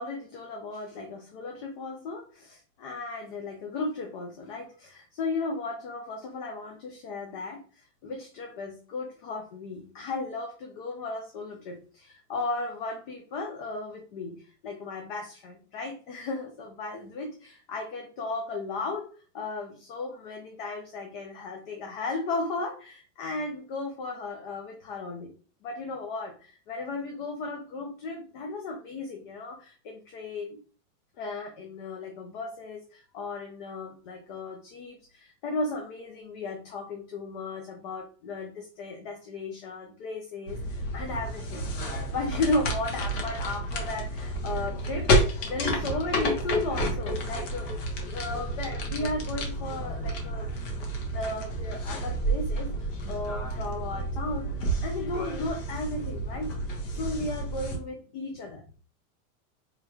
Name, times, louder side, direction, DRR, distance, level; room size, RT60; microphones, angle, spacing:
voice 1, 0.0-7.6 8.0-25.3 25.6-30.6 31.2-47.8 48.1-50.5 51.1-54.5 54.8-58.7, left 3 dB, 35° left, 2 dB, 0.6 m, -35 dB
sound 1, 40.5-57.8, right 1 dB, 60° left, 1.3 m, -30 dB
4.8 x 3.2 x 2.3 m, 0.39 s
supercardioid pair, 175°, 41 cm